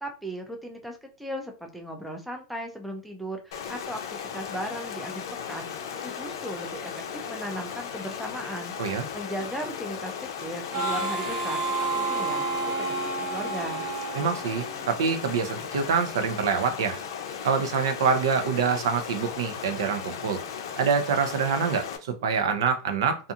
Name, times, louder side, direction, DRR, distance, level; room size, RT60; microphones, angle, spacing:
voice 1, 0.0-5.7 6.0-8.7 9.1-11.6 11.9-13.9, right 1 dB, ahead, 2 dB, 0.3 m, -37 dB
Stream, 3.5-22.0, left 7 dB, 80° left, 0.5 m, -36 dB
Harmonica, 10.7-15.2, right 3 dB, 25° right, 0.9 m, -30 dB
voice 2, 14.1-17.0 17.4-20.4 20.8-23.2, right 6 dB, 85° right, 7 dB, 0.6 m, -25 dB
2.4 x 2.4 x 2.7 m, 0.34 s
supercardioid pair, 175°, 2 cm